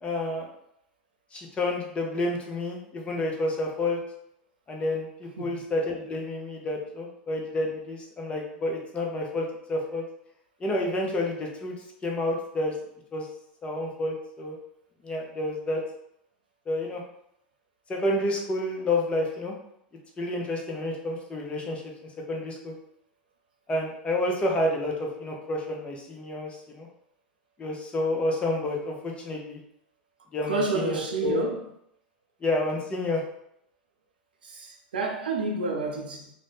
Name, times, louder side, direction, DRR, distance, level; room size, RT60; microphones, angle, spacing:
voice 1, 0.0-0.5 1.3-4.0 4.7-10.0 10.6-11.7 12.0-12.7 13.1-13.3 13.6-14.6 15.0-15.8 16.7-17.0 17.9-19.5 20.2-21.8 22.3-22.7 23.7-26.9 27.6-29.6 30.3-31.4 32.4-33.2, left 1 dB, 25° left, 0.7 m, -29 dB
voice 2, 30.4-31.6 34.4-36.3, right 3 dB, 80° right, 0.5 m, -30 dB
2.5 x 2.1 x 3.4 m
hypercardioid pair, 85°, 5 cm